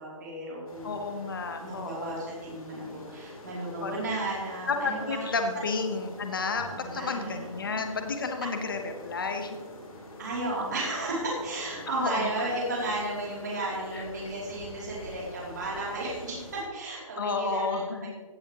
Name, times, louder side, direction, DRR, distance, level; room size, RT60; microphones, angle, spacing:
voice 1, 0.0-1.0 1.6-5.2 6.7-7.9 10.2-18.1, right 2 dB, 30° right, -5 dB, 3.1 m, -34 dB
sound 1, 0.7-16.6, left 1 dB, 85° left, 3.3 m, -46 dB
voice 2, 0.8-2.3 3.8-3.9 4.7-9.6 11.9-12.3 13.9-14.0 17.2-18.1, left 4 dB, 40° left, 6 dB, 1.0 m, -31 dB
16.5 x 7.1 x 3.0 m, 1.4 s
hypercardioid pair, 180°, 18 cm